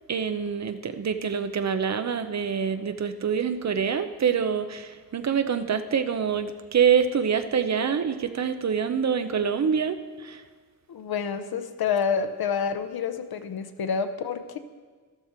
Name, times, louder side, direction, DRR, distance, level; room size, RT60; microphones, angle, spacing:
voice 1, 0.1-10.4, right 7 dB, 50° right, 10 dB, 0.7 m, -26 dB
voice 2, 10.9-14.6, left 6 dB, 90° left, 10 dB, 0.8 m, -28 dB
13.0 x 12.5 x 4.4 m, 1.5 s
wide cardioid pair, 165°, 36 cm